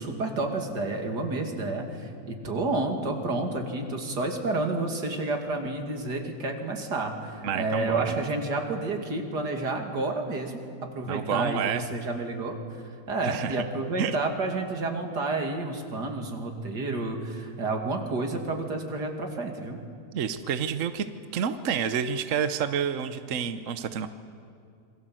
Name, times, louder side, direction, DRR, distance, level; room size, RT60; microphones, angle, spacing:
voice 1, 0.0-10.6 10.9-12.6 13.1-19.8, right 2 dB, 80° right, 3 dB, 3.1 m, -30 dB
voice 2, 7.4-8.1 11.1-11.9 13.2-13.6 14.0-14.2 20.1-21.1 21.3-24.1, right 7 dB, 55° right, 10 dB, 1.1 m, -29 dB
27.0 x 22.5 x 7.7 m, 2.4 s
omnidirectional pair, 1.8 m